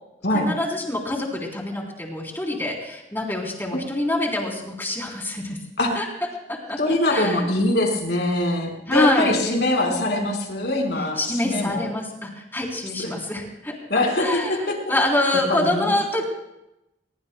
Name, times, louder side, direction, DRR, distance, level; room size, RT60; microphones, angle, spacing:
voice 1, 0.3-5.6 5.9-6.0 6.5-6.8 7.1-7.5 8.9-10.0 11.2-13.7 14.2-16.2, left 1 dB, 10° left, 0 dB, 3.4 m, -26 dB
voice 2, 6.8-11.8 13.0-13.1 13.9-14.8 15.5-15.9, left 1 dB, 70° left, 1 dB, 4.5 m, -23 dB
23.0 x 22.0 x 2.2 m, 0.88 s
head